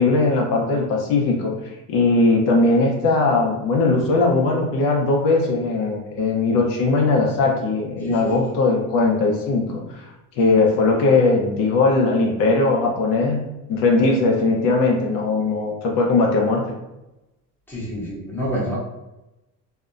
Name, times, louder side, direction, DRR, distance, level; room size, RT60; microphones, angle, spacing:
voice 1, 0.0-1.5 1.9-9.8 10.4-13.4 13.7-16.6, left 3 dB, 65° left, 0 dB, 0.6 m, -19 dB
voice 2, 8.0-8.6 10.4-10.6 17.7-18.8, equal, 5° left, -7 dB, 0.7 m, -29 dB
2.7 x 2.1 x 2.4 m, 0.96 s
cardioid pair, 145°, 36 cm